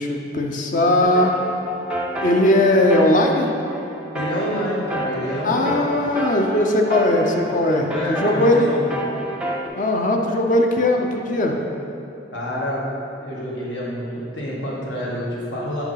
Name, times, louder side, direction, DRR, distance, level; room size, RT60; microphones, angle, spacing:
voice 1, 0.0-1.4 2.2-3.5 5.4-8.7 9.7-11.6, left 1 dB, 45° left, 2 dB, 0.6 m, -19 dB
sound 1, 1.0-9.7, right 1 dB, 5° right, 0.5 m, -30 dB
voice 2, 4.1-5.9 7.7-8.9 12.3-12.8 13.2-14.1 14.3-15.8, equal, 80° left, -5 dB, 1.7 m, -27 dB
6.0 x 4.9 x 5.7 m, 2.9 s
head